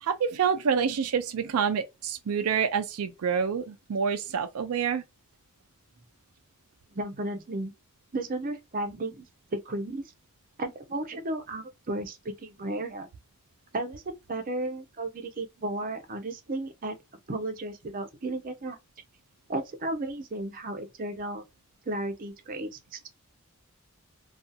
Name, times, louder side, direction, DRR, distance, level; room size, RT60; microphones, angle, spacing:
voice 1, 0.0-5.0, right 6 dB, 85° right, 0.4 m, -27 dB
voice 2, 6.9-7.7 8.1-10.0 10.6-13.1 13.7-14.0 14.3-17.0 17.3-18.8 19.5-21.4 21.9-23.1, right 2 dB, 40° right, 0.6 m, -34 dB
2.7 x 2.3 x 2.2 m
head